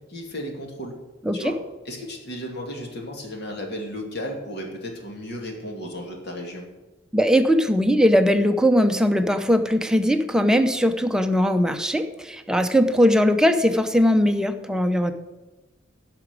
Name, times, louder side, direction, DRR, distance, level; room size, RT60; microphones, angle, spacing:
voice 1, 0.1-1.0 1.3-1.5 1.9-6.6, equal, 60° left, 1 dB, 2.4 m, -34 dB
voice 2, 7.1-15.1, equal, 5° right, 7 dB, 0.7 m, -20 dB
11.0 x 6.0 x 8.2 m, 1.2 s
head